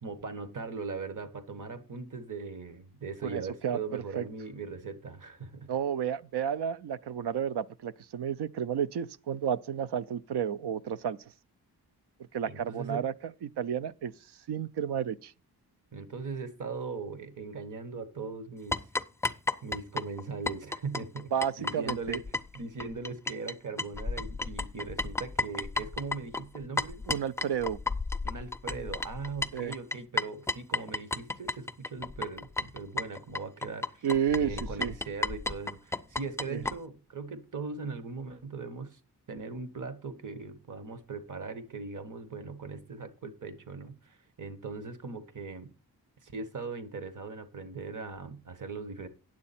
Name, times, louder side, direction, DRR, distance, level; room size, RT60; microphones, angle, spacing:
voice 1, 0.0-5.7 12.4-13.1 15.9-18.8 19.6-21.3 21.6-27.0 28.2-34.1 34.4-39.0 39.3-45.7 46.2-49.1, right 4 dB, 50° right, 1.3 m, -39 dB
voice 2, 3.2-4.3 5.7-11.2 12.3-13.1 13.4-14.1 14.5-15.3 21.3-22.2 27.1-27.8 29.5-29.8 34.0-34.5 34.8-34.9 36.5-36.6, right 8 dB, 85° right, 0.6 m, -31 dB
sound 1, 18.7-23.5 23.8-36.8, left 3 dB, 10° left, 0.3 m, -33 dB
9.5 x 7.5 x 4.2 m
wide cardioid pair, 125°, 39 cm